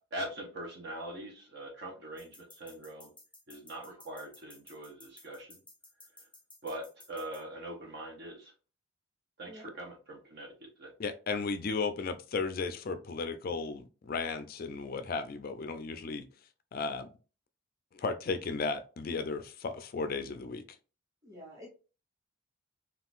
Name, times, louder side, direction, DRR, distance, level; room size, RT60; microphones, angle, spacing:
voice 1, 0.1-3.1 3.5-5.5 6.6-8.5 9.4-10.9, right 1 dB, 55° right, 0.8 m, -42 dB
sound 1, 2.2-7.4, left 2 dB, 5° left, 0.6 m, -55 dB
voice 2, 11.0-16.2 16.7-17.1 17.9-20.6, left 4 dB, 45° left, 0.4 m, -35 dB
voice 3, 21.2-21.7, equal, 15° right, 1.5 m, -48 dB
3.7 x 2.4 x 2.4 m
head